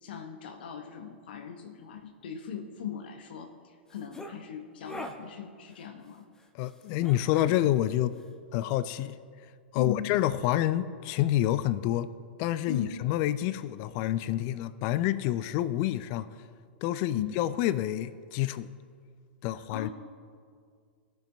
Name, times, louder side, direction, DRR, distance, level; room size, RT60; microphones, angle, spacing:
voice 1, 0.0-6.3 9.7-10.1 12.7-12.9 17.1-17.3 19.5-19.9, left 8 dB, 60° left, 0.8 m, -39 dB
sound 1, 3.9-4.3 4.8-5.2 7.0-7.6, left 1 dB, 10° left, 0.8 m, -40 dB
voice 2, 6.5-8.2 8.5-9.2 9.7-12.1 12.4-16.3 16.8-18.7 19.4-19.9, left 13 dB, 40° left, 0.4 m, -28 dB
18.5 x 7.0 x 2.6 m
figure-of-eight pair, 100°, 6 cm